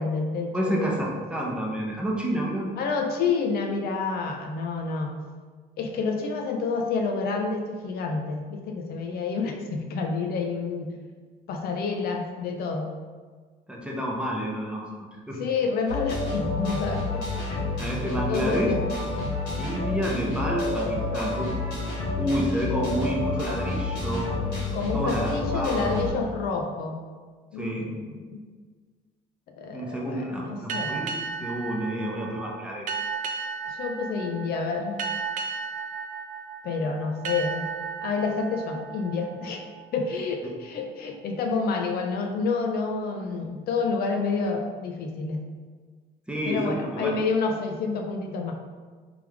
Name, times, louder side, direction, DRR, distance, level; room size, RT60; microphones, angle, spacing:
voice 1, 0.0-1.0 2.8-5.2 5.8-10.9 11.5-12.9 15.4-17.7 18.3-18.8 24.7-27.0 27.5-28.2 29.6-31.0 33.7-35.0 36.6-37.7 38.0-39.6 39.9-45.4 46.4-48.5, left 4 dB, 65° left, 3 dB, 0.5 m, -29 dB
voice 2, 0.5-2.7 13.7-15.4 17.8-18.7 19.6-21.5 22.1-24.3 24.9-26.0 27.6-27.9 29.7-32.9 46.3-47.1, equal, 5° right, -2 dB, 0.8 m, -29 dB
sound 1, 15.9-26.1, left 2 dB, 90° left, 1.4 m, -29 dB
sound 2, 30.7-40.0, right 5 dB, 50° right, 0.4 m, -34 dB
3.4 x 3.3 x 3.4 m, 1.5 s
cardioid pair, 110°, 17 cm